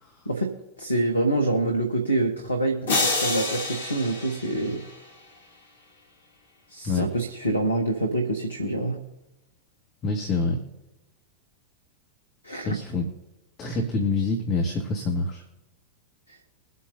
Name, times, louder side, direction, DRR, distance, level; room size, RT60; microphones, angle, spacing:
voice 1, 0.8-4.8 6.7-9.0 12.4-12.8 16.3-16.4, right 2 dB, 80° left, 5 dB, 1.3 m, -26 dB
sound 1, 2.9-5.2, left 3 dB, 65° left, 2.0 m, -28 dB
voice 2, 10.0-10.6 12.6-13.1 13.6-15.4, left 3 dB, 30° left, 2 dB, 1.9 m, -26 dB
23.0 x 8.3 x 2.8 m, 1.0 s
figure-of-eight pair, 90°, 0 cm